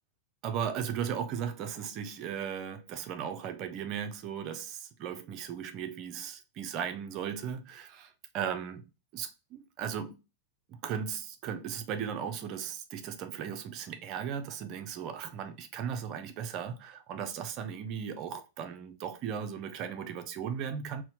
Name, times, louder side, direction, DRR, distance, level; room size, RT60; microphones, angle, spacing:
voice 1, 0.4-8.8 9.1-10.1 10.7-21.0, right 8 dB, 45° right, 0.5 m, -37 dB
4.2 x 2.1 x 2.8 m
hypercardioid pair, 95°, 0 cm